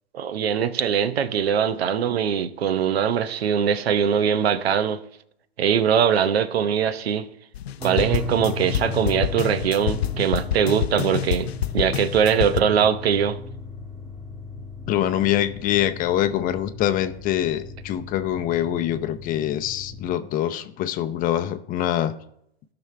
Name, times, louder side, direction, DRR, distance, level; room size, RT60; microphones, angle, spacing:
voice 1, 0.1-5.0 5.6-7.3 7.8-13.4, right 8 dB, 70° right, 0.9 m, -22 dB
sound 1, 7.5-12.6, left 10 dB, 75° left, 0.6 m, -27 dB
sound 2, 7.8-20.1, left 3 dB, ahead, 1.2 m, -36 dB
voice 2, 14.9-22.1, left 12 dB, 25° left, 0.7 m, -24 dB
16.0 x 6.2 x 3.3 m
hypercardioid pair, 115°, 32 cm